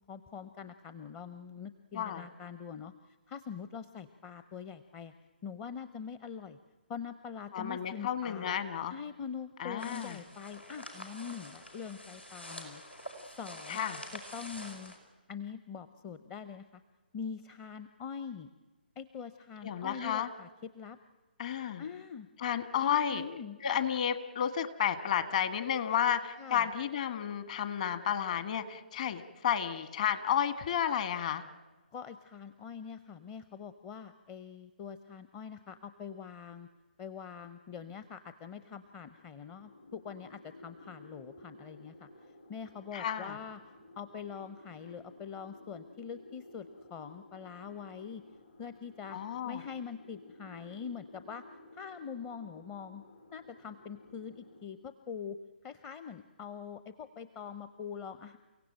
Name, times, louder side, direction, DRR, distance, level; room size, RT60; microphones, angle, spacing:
voice 1, 0.1-5.1 5.4-6.6 6.9-8.5 8.9-13.1 13.4-13.8 14.1-14.9 15.3-16.8 17.1-18.5 19.0-21.0 21.8-22.3 22.8-23.6 26.4-26.7 31.9-36.7 37.0-48.2 48.6-49.2 49.4-51.4 51.7-53.0 53.3-58.4, left 7 dB, 20° left, 11 dB, 0.7 m, -44 dB
voice 2, 7.5-8.9 9.6-10.2 13.7-14.0 19.6-20.3 21.4-21.8 22.4-23.2 23.6-31.4 42.9-43.4 49.1-49.6, left 9 dB, 40° left, 10 dB, 1.8 m, -32 dB
sound 1, 9.8-15.0, equal, 85° left, 5.3 m, -47 dB
sound 2, 38.7-54.7, left 1 dB, 60° left, 4.4 m, -55 dB
29.5 x 16.5 x 8.9 m, 1.2 s
figure-of-eight pair, 135°, 6 cm